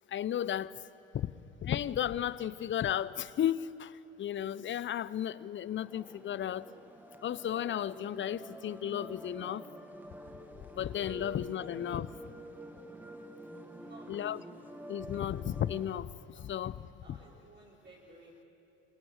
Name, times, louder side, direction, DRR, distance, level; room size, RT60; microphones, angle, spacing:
voice 1, 0.1-0.7 1.1-1.3 1.6-6.7 7.2-9.7 10.8-12.1 14.1-14.4 14.9-16.1 16.4-17.2, left 10 dB, 35° left, 19 dB, 0.8 m, -34 dB
sound 1, 5.8-16.0, right 1 dB, 5° right, 1.6 m, -48 dB
voice 2, 13.6-14.1 16.3-16.6 17.0-18.5, right 1 dB, 30° right, -6 dB, 5.2 m, -57 dB
26.5 x 24.0 x 7.5 m, 2.9 s
hypercardioid pair, 65°, 34 cm